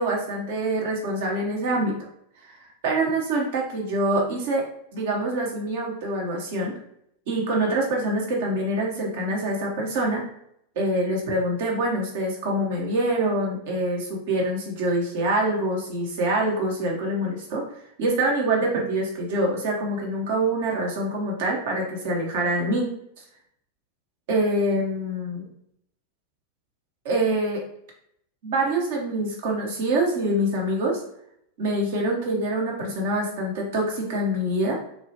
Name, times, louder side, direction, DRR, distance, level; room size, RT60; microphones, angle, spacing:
voice 1, 0.0-1.9 2.4-6.8 7.3-10.2 10.8-17.6 18.0-22.9 24.3-25.5 27.0-27.6 28.4-31.0 31.6-34.8, right 1 dB, 50° right, -1 dB, 0.9 m, -25 dB
3.1 x 2.3 x 2.8 m, 0.72 s
figure-of-eight pair, 90°, 0 cm